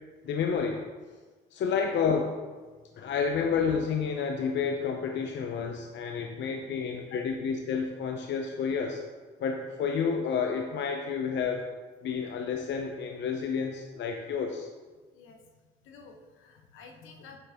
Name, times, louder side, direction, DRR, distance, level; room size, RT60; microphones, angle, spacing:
voice 1, 0.2-0.8 1.5-2.4 3.0-9.0 9.4-11.7 12.0-14.7, left 6 dB, 65° left, 3 dB, 0.7 m, -30 dB
voice 2, 15.1-17.4, left 4 dB, 85° left, 3 dB, 1.2 m, -51 dB
9.0 x 6.4 x 3.6 m, 1.3 s
cardioid pair, 90°, 20 cm